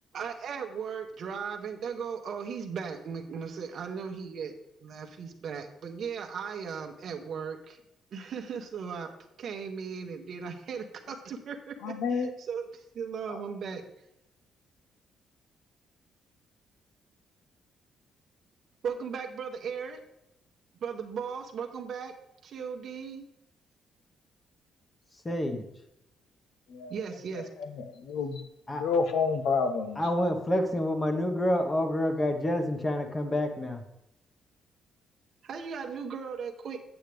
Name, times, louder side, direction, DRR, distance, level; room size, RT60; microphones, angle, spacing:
voice 1, 0.1-4.5 4.8-7.8 8.1-9.1 9.4-13.8 18.8-20.0 20.8-22.1 22.4-23.3 26.9-27.5 35.4-36.8, right 6 dB, 60° right, 5 dB, 0.9 m, -37 dB
voice 2, 11.8-12.3 13.3-13.4 26.7-26.9 28.0-28.4 28.7-30.0, left 5 dB, 80° left, 7 dB, 0.8 m, -28 dB
voice 3, 25.2-25.6 28.7-28.8 30.0-33.8, left 1 dB, 20° left, 5 dB, 1.2 m, -28 dB
8.0 x 8.0 x 3.4 m, 0.86 s
cardioid pair, 90°, 0 cm